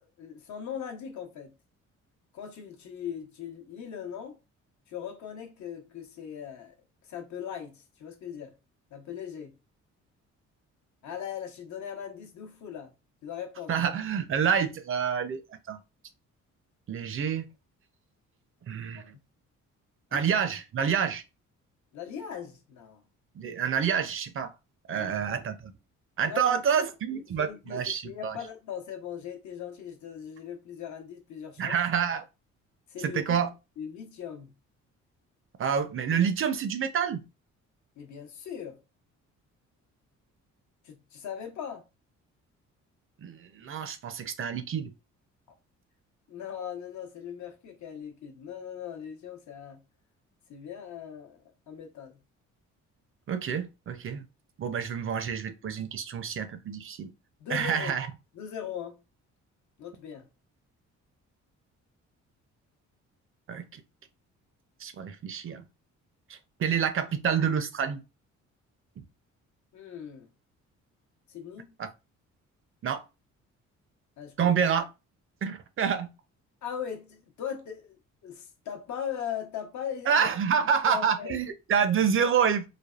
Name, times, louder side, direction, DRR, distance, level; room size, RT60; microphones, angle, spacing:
voice 1, 0.0-1.5 2.3-4.4 4.9-6.7 7.0-8.6 8.9-9.6 11.0-12.9 13.2-13.8 18.9-19.1 20.1-20.2 21.9-23.0 24.9-25.4 26.2-26.6 27.1-31.8 32.9-33.2 33.8-34.5 38.0-38.8 40.8-41.8 46.3-49.8 50.5-52.2 57.4-57.9 58.3-59.0 59.8-60.3 69.7-70.3 71.3-71.7 74.2-74.5 76.6-78.0 78.2-80.3 80.8-81.4, left 8 dB, 70° left, 0.9 m, -39 dB
voice 2, 13.7-15.8 16.9-17.5 18.7-19.1 20.1-21.2 23.4-24.5 24.9-25.7 26.2-28.4 31.6-32.2 33.0-33.5 35.6-37.2 43.2-44.9 53.3-54.2 54.6-57.1 57.5-58.1 63.5-63.8 64.8-65.7 66.3-68.0 69.0-69.1 71.8-71.9 72.8-73.0 74.4-74.9 75.4-76.1 80.1-82.7, right 7 dB, 45° right, 0.5 m, -28 dB
3.3 x 2.1 x 2.4 m
cardioid pair, 90°, 30 cm